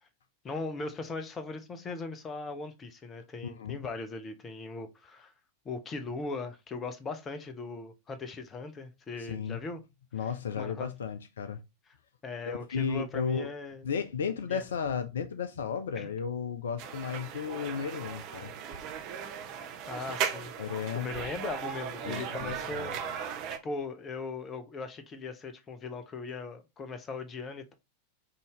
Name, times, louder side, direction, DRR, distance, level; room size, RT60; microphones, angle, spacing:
voice 1, 0.4-5.3 5.6-9.8 10.6-10.9 12.2-13.8 14.5-14.6 16.0-16.1 19.9-23.3 23.6-27.7, left 3 dB, 20° left, 0.8 m, -39 dB
voice 2, 3.4-3.8 9.2-9.6 10.1-11.6 12.5-13.5 13.8-18.5 20.6-21.1 22.0-22.9, left 6 dB, 65° left, 0.4 m, -34 dB
sound 1, 16.8-23.6, right 8 dB, 40° right, 0.7 m, -37 dB
5.3 x 2.7 x 3.1 m
figure-of-eight pair, 90°, 0 cm